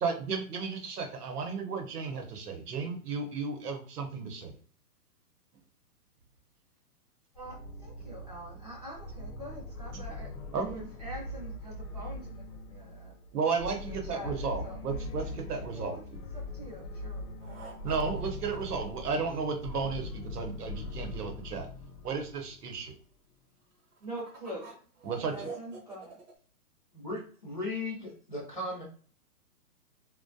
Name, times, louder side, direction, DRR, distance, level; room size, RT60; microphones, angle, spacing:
voice 1, 0.0-4.6 9.9-10.0 10.5-10.8 13.3-16.2 17.8-21.7 22.0-22.9 25.0-25.5, right 5 dB, 90° right, 5 dB, 0.8 m, -34 dB
sound 1, 7.3-23.0, left 1 dB, 90° left, 0.7 m, -41 dB
voice 2, 7.3-13.1 13.8-14.3 14.6-14.8 15.7-16.0 16.3-17.8 24.0-24.7 25.3-26.2, equal, 30° right, -5 dB, 0.5 m, -45 dB
sound 2, 17.4-19.6 23.7-26.3, right 4 dB, 55° right, 0.8 m, -47 dB
voice 3, 26.9-28.8, left 2 dB, 35° left, -4 dB, 0.4 m, -37 dB
2.2 x 2.2 x 2.5 m, 0.43 s
hypercardioid pair, 180°, 45 cm